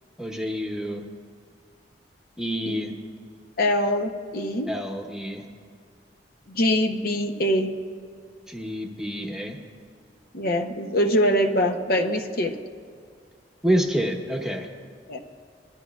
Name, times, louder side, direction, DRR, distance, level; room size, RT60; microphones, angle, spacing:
voice 1, 0.2-1.0 2.4-2.9 4.7-5.4 8.5-9.6 13.6-14.7, equal, 5° right, 1 dB, 0.9 m, -27 dB
voice 2, 3.6-4.7 6.5-7.7 10.3-12.6 15.1-15.2, equal, 55° left, 3 dB, 0.7 m, -23 dB
21.0 x 12.5 x 2.4 m, 2.2 s
head